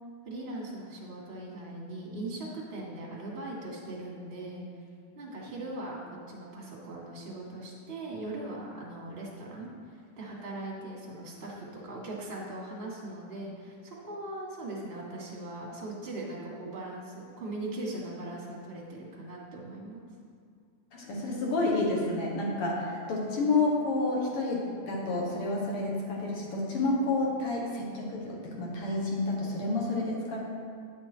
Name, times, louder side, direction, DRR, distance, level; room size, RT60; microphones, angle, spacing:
voice 1, 0.2-4.6 5.1-20.0, right 2 dB, 25° right, -4 dB, 1.3 m, -40 dB
voice 2, 20.9-30.4, left 2 dB, 55° left, -2 dB, 1.9 m, -29 dB
10.5 x 6.8 x 4.4 m, 2.2 s
omnidirectional pair, 3.6 m